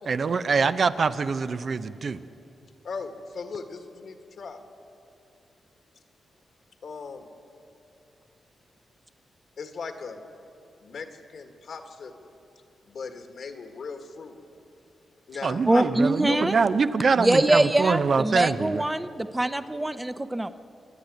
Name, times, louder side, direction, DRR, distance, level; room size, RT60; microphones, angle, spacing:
voice 1, 0.1-2.2 15.4-18.8, right 5 dB, 60° right, 11 dB, 0.8 m, -24 dB
voice 2, 2.8-4.6 6.8-7.3 9.6-10.2 10.8-12.3 12.9-14.4 15.3-15.8 16.3-16.4, left 5 dB, 70° left, 6 dB, 1.7 m, -38 dB
voice 3, 15.7-16.5 17.2-20.5, right 1 dB, 15° right, 12 dB, 0.8 m, -23 dB
27.5 x 10.5 x 9.3 m, 2.7 s
cardioid pair, 70°, 0 cm